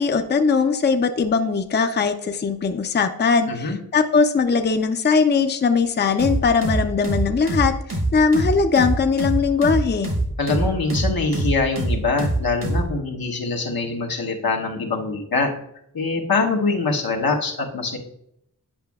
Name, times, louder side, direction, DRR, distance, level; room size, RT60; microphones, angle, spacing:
voice 1, 0.0-7.7 8.1-10.1, left 5 dB, 30° left, 7 dB, 0.5 m, -20 dB
voice 2, 3.5-3.8 10.4-15.5 15.9-18.0, left 3 dB, 80° left, 1 dB, 1.0 m, -24 dB
sound 1, 6.2-12.9, right 1 dB, 60° right, 1.3 m, -24 dB
8.8 x 5.1 x 2.3 m, 0.74 s
cardioid pair, 45°, 36 cm